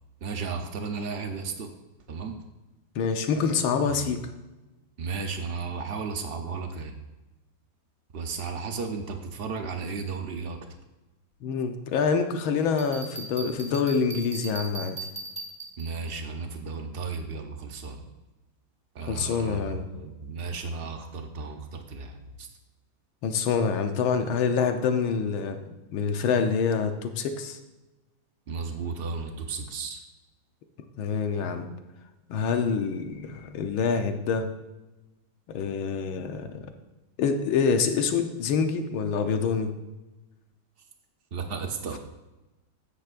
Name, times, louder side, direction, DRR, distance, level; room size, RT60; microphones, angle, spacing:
voice 1, 0.2-1.7 2.1-2.4 4.0-4.2 5.0-7.0 8.1-10.6 15.8-18.1 18.9-22.5 28.5-30.0 41.3-42.0, right 4 dB, 90° right, 5 dB, 0.5 m, -34 dB
voice 2, 3.0-4.2 11.4-15.0 19.0-19.9 23.2-25.6 25.9-27.6 31.0-31.7 32.3-34.5 35.5-36.7 37.2-39.7, left 5 dB, 85° left, 6 dB, 1.7 m, -26 dB
Bell, 12.8-16.1, right 3 dB, 5° left, 0.8 m, -39 dB
13.5 x 9.8 x 2.5 m, 1.1 s
omnidirectional pair, 2.2 m